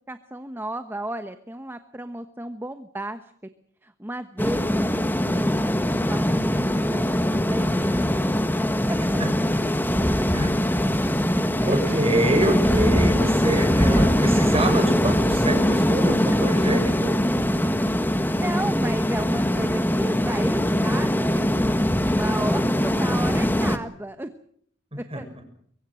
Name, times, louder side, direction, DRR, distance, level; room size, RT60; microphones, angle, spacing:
voice 1, 0.1-3.2 3.8-8.1 8.9-9.0 11.6-11.8 17.6-24.3 25.1-25.3, right 1 dB, 10° right, 9 dB, 1.1 m, -34 dB
sound 1, 4.4-23.8, equal, 10° left, 1.4 m, -22 dB
voice 2, 10.8-11.1 11.4-17.2 19.5-19.6 24.9-25.2, right 1 dB, 30° right, 5 dB, 7.0 m, -26 dB
23.5 x 23.5 x 6.4 m, 0.65 s
head